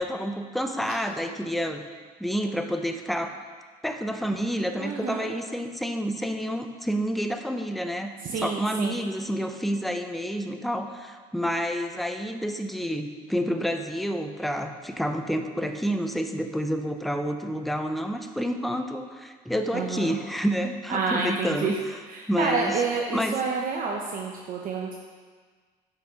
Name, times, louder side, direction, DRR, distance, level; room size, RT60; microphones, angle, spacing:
voice 1, 0.0-1.8 2.2-3.3 3.8-8.1 8.4-22.0 22.3-22.8 23.1-23.4, equal, ahead, 5 dB, 0.7 m, -29 dB
voice 2, 4.8-5.3 8.2-9.0 19.7-20.2 20.9-21.8 22.1-24.9, right 5 dB, 55° right, 0 dB, 0.9 m, -29 dB
9.5 x 5.9 x 5.1 m, 1.5 s
cardioid pair, 110°, 17 cm